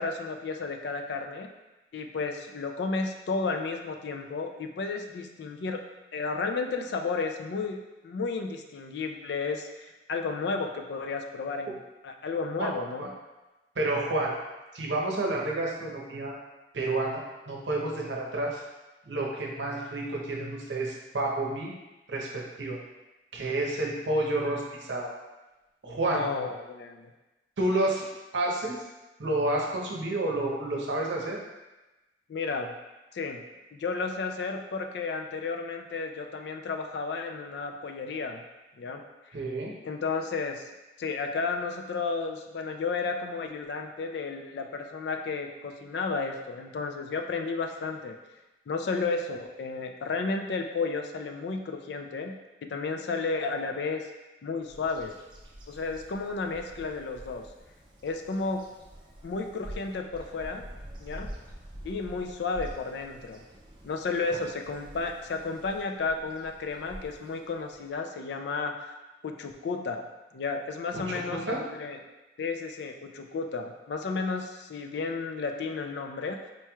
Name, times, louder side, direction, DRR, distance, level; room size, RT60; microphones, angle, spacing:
voice 1, 0.0-1.5 1.9-5.8 6.1-7.8 8.0-13.1 26.1-27.1 32.3-32.7 33.1-33.4 33.7-38.4 38.8-39.0 39.3-39.4 39.8-40.7 41.0-48.2 48.7-52.3 52.6-54.1 54.4-55.1 55.7-57.5 58.0-58.6 59.2-60.6 61.0-61.3 61.8-63.4 63.8-68.9 69.2-70.0 70.3-72.0 72.4-76.5, left 4 dB, 70° left, 4 dB, 0.3 m, -32 dB
voice 2, 13.8-14.3 14.7-16.3 16.7-18.6 19.1-21.7 22.1-22.8 23.3-25.1 25.8-26.2 27.6-28.0 28.3-28.8 29.2-31.4 39.3-39.7 70.9-71.6, right 2 dB, 85° right, -2 dB, 0.7 m, -30 dB
Bird vocalization bird call bird song, 54.7-68.0, right 1 dB, 25° right, 0.4 m, -47 dB
4.4 x 3.0 x 2.3 m, 1.1 s
head